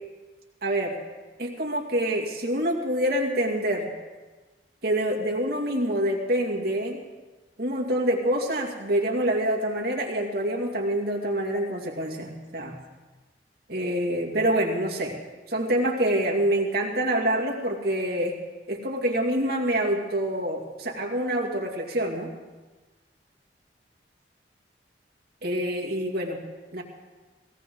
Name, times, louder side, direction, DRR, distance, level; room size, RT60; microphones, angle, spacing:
voice 1, 0.6-0.9 1.4-3.9 4.8-7.0 7.6-12.8 13.7-15.2 15.5-18.3 18.7-22.3 25.4-26.4 26.7-26.8, right 1 dB, 60° right, -1 dB, 2.4 m, -26 dB
17.5 x 17.5 x 3.9 m, 1.3 s
head